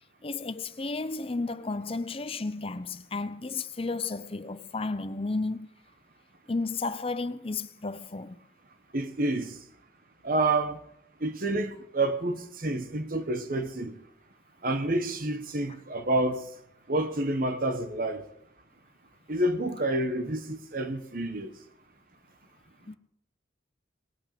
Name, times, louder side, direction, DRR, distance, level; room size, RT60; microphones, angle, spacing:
voice 1, 0.2-5.7 6.5-8.4 22.8-23.0, left 3 dB, 30° left, 0.6 m, -33 dB
voice 2, 8.9-9.5 10.2-10.8 11.2-13.9 14.6-16.4 16.9-18.2 19.3-21.5, right 2 dB, 50° right, 1.2 m, -28 dB
19.5 x 8.8 x 6.8 m
head